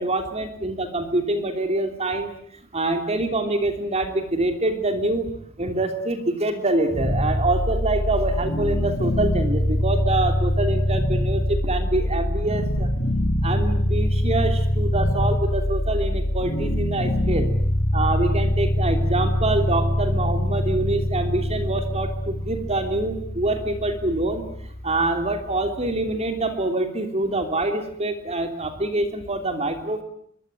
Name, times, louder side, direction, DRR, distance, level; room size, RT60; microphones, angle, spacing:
voice 1, 0.0-2.3 2.7-5.3 5.6-12.9 13.4-17.5 17.9-24.4 24.8-30.0, right 2 dB, 35° right, 6 dB, 3.1 m, -25 dB
sound 1, 6.9-25.9, left 1 dB, 30° left, 3.3 m, -24 dB
24.5 x 23.0 x 9.2 m, 0.67 s
head